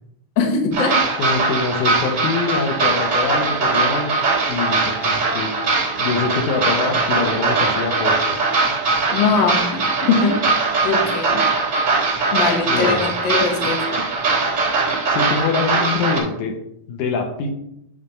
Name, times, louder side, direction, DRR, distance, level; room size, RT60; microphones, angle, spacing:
voice 1, 0.4-0.9 9.1-9.6 10.0-10.3 10.8-11.4 12.3-14.0, left 5 dB, 50° left, 1 dB, 1.5 m, -20 dB
sound 1, 0.7-16.2, right 3 dB, 35° right, 2.9 m, -20 dB
voice 2, 1.1-4.2 4.5-5.5 6.0-8.6 12.1-12.3 12.7-13.1 15.1-16.6 16.9-17.5, left 5 dB, 75° left, 4 dB, 2.3 m, -24 dB
9.2 x 3.4 x 5.5 m, 0.79 s
omnidirectional pair, 3.5 m